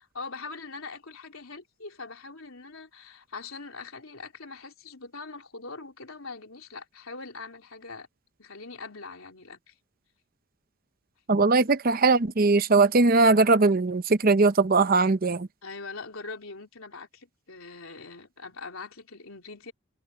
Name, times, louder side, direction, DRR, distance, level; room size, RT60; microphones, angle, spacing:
voice 1, 0.0-8.1 8.4-9.7 15.6-19.7, left 4 dB, 80° left, 3.2 m, -42 dB
voice 2, 11.3-15.5, right 3 dB, 45° right, 0.7 m, -20 dB
head